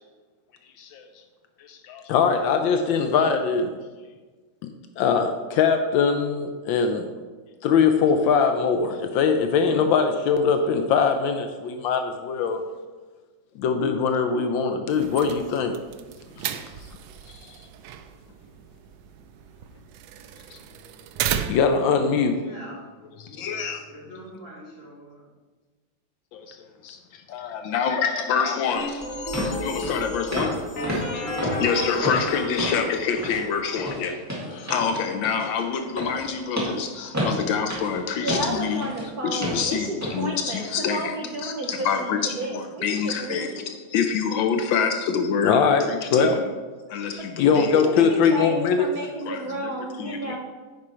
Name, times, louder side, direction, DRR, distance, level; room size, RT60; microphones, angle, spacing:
voice 1, 0.8-1.1 1.6-3.8 4.6-7.1 7.6-12.6 13.5-15.8 16.4-16.5 17.3-17.6 20.5-20.6 21.5-22.4 23.2-23.8 26.3-26.6 26.8-27.0 27.3-29.1 29.4-30.6 30.9-34.2 34.5-38.9 39.2-41.1 41.4-43.6 43.9-46.5 46.9-48.9 49.3-50.4, left 6 dB, 80° left, 6 dB, 1.3 m, -24 dB
sound 1, 14.9-21.9, right 9 dB, 90° right, 1.4 m, -35 dB
voice 2, 22.2-22.8 23.2-25.2, equal, 30° left, -6 dB, 2.7 m, -44 dB
sound 2, 28.7-28.8 29.3-29.6 29.8-30.0 30.3-30.6 30.8-32.9 33.2-33.4 33.8-39.1 39.4-39.6 40.0-40.2 40.6-40.8, equal, 10° right, 1.9 m, -30 dB
sound 3, 28.8-33.8, left 2 dB, 45° left, 1.3 m, -33 dB
voice 3, 38.2-43.7 47.5-50.4, right 2 dB, 60° right, 0 dB, 1.1 m, -32 dB
9.5 x 5.1 x 4.3 m, 1.3 s
omnidirectional pair, 2.2 m